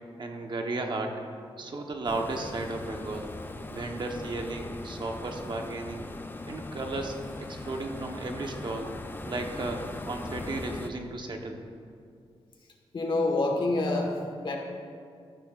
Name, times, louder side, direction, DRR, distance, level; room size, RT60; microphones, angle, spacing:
voice 1, 0.2-1.2 1.6-3.3 3.7-6.0 6.4-8.9 9.2-11.6, right 2 dB, 45° right, 3 dB, 1.0 m, -34 dB
sound 1, 2.0-10.9, left 2 dB, 20° left, 0.5 m, -40 dB
voice 2, 12.9-14.6, left 2 dB, 50° left, 2 dB, 1.5 m, -27 dB
14.0 x 12.0 x 2.5 m, 2.3 s
wide cardioid pair, 120°, 11 cm